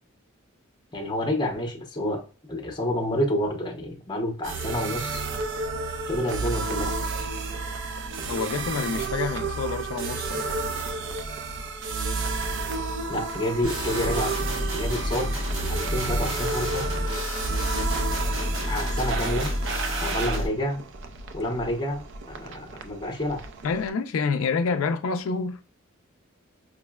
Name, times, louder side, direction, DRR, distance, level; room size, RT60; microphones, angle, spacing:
voice 1, 0.9-2.2 2.5-5.2 6.1-7.0 13.1-14.3 14.7-15.4 15.7-16.9 18.7-19.5 20.0-20.8 21.3-23.4, left 1 dB, 20° left, 0.6 m, -29 dB
sound 1, 4.4-23.9, right 3 dB, 60° right, 0.4 m, -31 dB
voice 2, 8.3-10.6 23.6-25.6, left 5 dB, 85° left, 0.3 m, -28 dB
Heavy Dubstep Wobble Bass, 13.6-20.5, equal, 85° right, 1.1 m, -29 dB
4.9 x 2.1 x 2.2 m
head